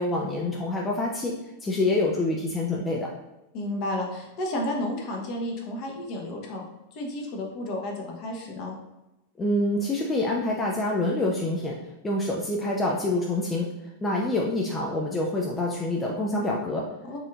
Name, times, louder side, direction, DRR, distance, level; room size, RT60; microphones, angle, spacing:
voice 1, 0.0-1.3 1.6-3.1 9.4-16.9, left 2 dB, 15° left, -2 dB, 0.4 m, -26 dB
voice 2, 3.5-6.6 6.9-8.8 17.0-17.2, left 1 dB, 40° left, 0 dB, 0.8 m, -32 dB
4.1 x 2.6 x 2.4 m, 0.97 s
figure-of-eight pair, 90°, 0 cm